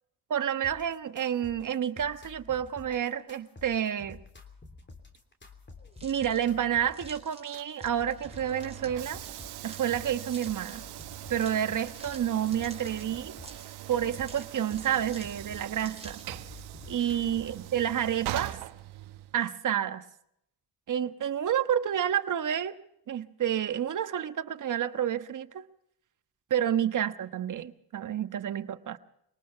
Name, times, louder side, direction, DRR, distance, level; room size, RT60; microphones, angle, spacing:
voice 1, 0.3-4.2 6.0-9.2 9.6-10.8 11.3-13.3 13.9-16.2 16.9-18.6 19.3-20.0 20.9-22.8 23.1-25.6 26.5-29.0, right 10 dB, 50° right, 10 dB, 1.3 m, -29 dB
sound 1, 0.6-17.6, left 3 dB, 30° left, 3.2 m, -50 dB
sound 2, 5.9-16.4, right 3 dB, 15° right, 4.7 m, -52 dB
Train / Sliding door, 8.0-19.5, right 15 dB, 90° right, 1.0 m, -42 dB
23.5 x 19.0 x 5.8 m, 0.76 s
supercardioid pair, 70°, 38 cm